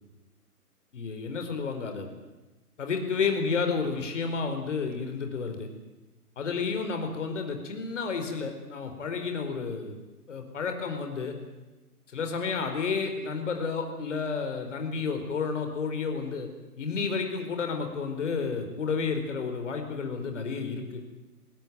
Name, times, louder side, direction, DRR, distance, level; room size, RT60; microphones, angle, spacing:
voice 1, 0.9-2.1 2.8-5.7 6.4-10.0 10.3-11.4 12.1-16.5 16.8-21.0, left 5 dB, 50° left, 6 dB, 4.6 m, -31 dB
21.0 x 19.5 x 9.4 m, 1.1 s
figure-of-eight pair, 135°, 46 cm